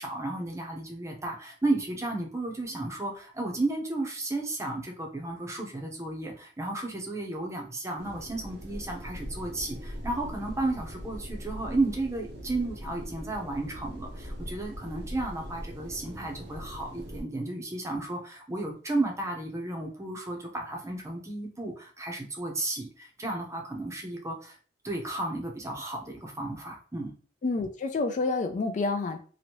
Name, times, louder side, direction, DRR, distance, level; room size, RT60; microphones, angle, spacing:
voice 1, 0.0-24.6 24.8-27.1, right 2 dB, 15° right, 1 dB, 0.6 m, -33 dB
Windy creaky old house ambience, 8.0-17.2, equal, 65° right, 0.6 m, -41 dB
voice 2, 27.4-29.2, left 3 dB, 45° left, 7 dB, 0.3 m, -28 dB
3.0 x 2.6 x 2.9 m, 0.40 s
head